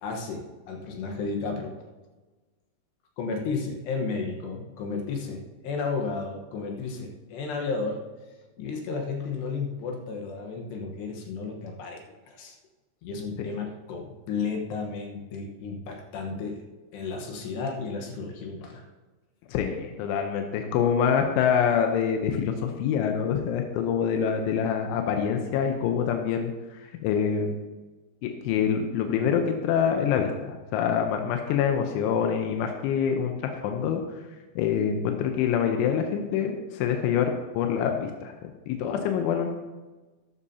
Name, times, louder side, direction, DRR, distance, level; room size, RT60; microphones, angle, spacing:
voice 1, 0.0-1.7 3.2-8.0 8.6-12.0 12.3-12.6 13.0-16.6 16.9-18.9, left 4 dB, 70° left, 2 dB, 3.2 m, -33 dB
voice 2, 19.5-26.5 27.0-27.6 28.2-34.0 34.6-39.5, left 7 dB, 90° left, 4 dB, 3.3 m, -26 dB
13.0 x 11.0 x 2.8 m, 1.2 s
omnidirectional pair, 5.3 m